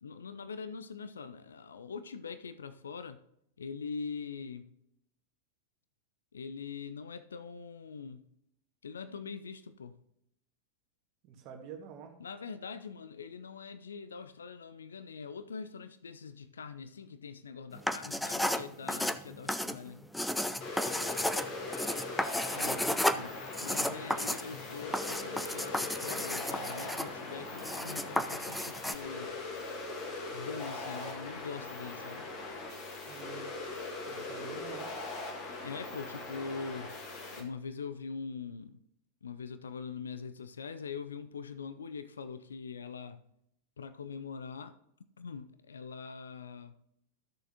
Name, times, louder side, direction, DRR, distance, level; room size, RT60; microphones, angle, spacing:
voice 1, 0.0-3.2 3.6-4.7 6.3-8.3 8.8-10.0 12.2-20.1 22.5-29.4 30.3-32.3 35.6-36.9 37.3-38.8 39.2-43.2 43.8-44.8 45.2-46.7, left 5 dB, 70° left, 0.5 m, -43 dB
voice 2, 11.2-12.1 20.8-21.3 33.1-33.5 34.1-35.0, right 6 dB, 40° right, 1.7 m, -47 dB
sound 1, 17.8-29.0, left 1 dB, 5° left, 0.4 m, -33 dB
sound 2, 20.6-37.4, left 3 dB, 40° left, 1.8 m, -41 dB
14.0 x 6.6 x 2.8 m
figure-of-eight pair, 90°, 0 cm